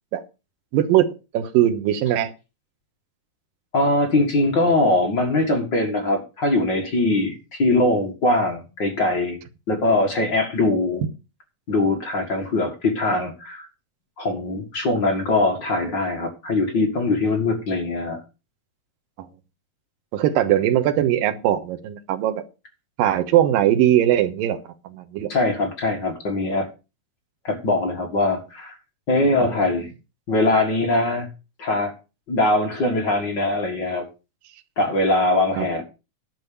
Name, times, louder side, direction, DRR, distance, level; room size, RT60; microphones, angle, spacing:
voice 1, 0.7-1.1 1.3-2.3 20.1-22.4 23.0-24.6 24.8-25.3 29.3-29.5 35.6-35.7, right 12 dB, 80° right, 2.8 m, -20 dB
voice 2, 3.7-9.4 9.7-11.0 11.7-13.7 14.2-18.2 25.3-26.7 27.4-28.7 29.1-29.9 30.3-31.3 31.6-31.9 32.3-34.1 34.8-35.8, left 2 dB, 40° left, 1.8 m, -22 dB
11.0 x 6.3 x 6.8 m
omnidirectional pair, 4.1 m